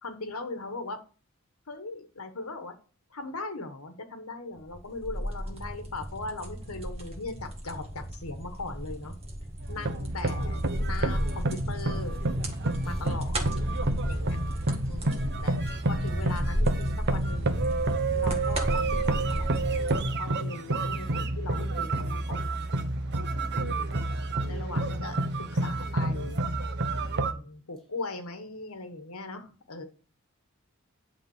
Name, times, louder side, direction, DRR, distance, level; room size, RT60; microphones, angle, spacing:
voice 1, 0.0-1.0 1.7-2.7 3.1-9.1 9.7-12.2 12.8-13.7 14.1-14.4 14.9-15.6 15.9-17.6 18.1-19.5 19.8-22.7 23.6-24.1 24.4-25.2 25.5-26.4 27.2-29.8, left 3 dB, 80° left, 1.3 m, -39 dB
sound 1, 4.6-20.1, equal, 30° right, 1.6 m, -34 dB
sound 2, 9.6-27.3, right 2 dB, 50° right, 0.9 m, -29 dB
voice 2, 14.9-15.4 23.3-23.9 26.9-27.4, equal, ahead, 2.3 m, -53 dB
10.5 x 3.8 x 7.1 m
head